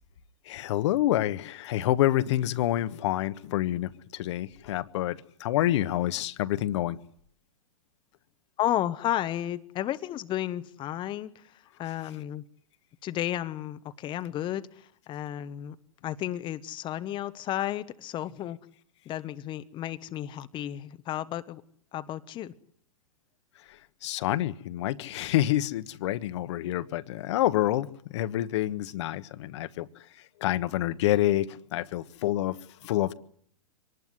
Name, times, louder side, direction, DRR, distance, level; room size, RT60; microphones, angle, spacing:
voice 1, 0.5-7.0 24.0-27.9 28.1-29.9 30.4-32.6 32.8-33.1, left 14 dB, 55° left, 12 dB, 1.3 m, -27 dB
voice 2, 8.6-12.4 13.0-15.8 16.0-18.6 19.1-21.6 21.9-22.5, left 12 dB, 25° left, 11 dB, 1.1 m, -33 dB
25.0 x 19.0 x 9.7 m, 0.64 s
hypercardioid pair, 110°, 18 cm